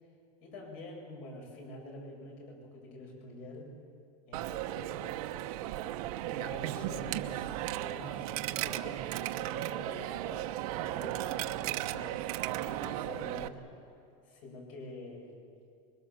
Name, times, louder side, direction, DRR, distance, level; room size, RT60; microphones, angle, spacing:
voice 1, 0.4-3.7 4.3-5.2 6.3-10.5 10.8-13.7 14.2-15.4, left 1 dB, 60° left, 0 dB, 7.7 m, -46 dB
Coin (dropping), 4.3-13.5, right 14 dB, 70° right, 1.0 m, -36 dB
25.5 x 22.5 x 7.1 m, 2.5 s
supercardioid pair, 150°, 20 cm